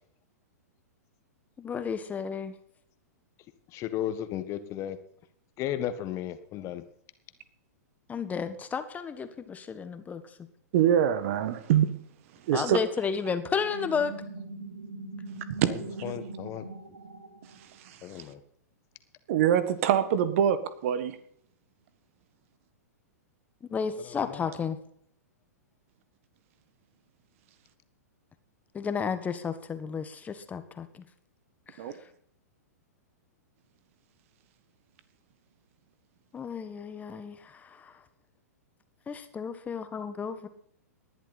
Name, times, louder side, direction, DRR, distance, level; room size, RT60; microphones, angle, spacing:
voice 1, 1.6-2.5 8.1-10.2 12.5-14.1 23.7-24.8 28.7-31.0 31.7-31.8 36.3-37.9 39.1-40.5, left 6 dB, 15° left, 10 dB, 1.5 m, -32 dB
voice 2, 3.7-5.0 5.6-6.8 15.7-16.6 18.0-18.4 24.2-24.5, left 11 dB, 35° left, 11 dB, 1.5 m, -34 dB
voice 3, 10.7-11.9 12.5-12.8 15.6-15.7 19.3-21.1 31.8-31.9, right 9 dB, 50° right, 13 dB, 1.6 m, -24 dB
sound 1, 13.4-17.9, right 2 dB, 90° right, 3.4 m, -41 dB
19.5 x 11.5 x 4.2 m, 0.66 s
figure-of-eight pair, 110°, 9 cm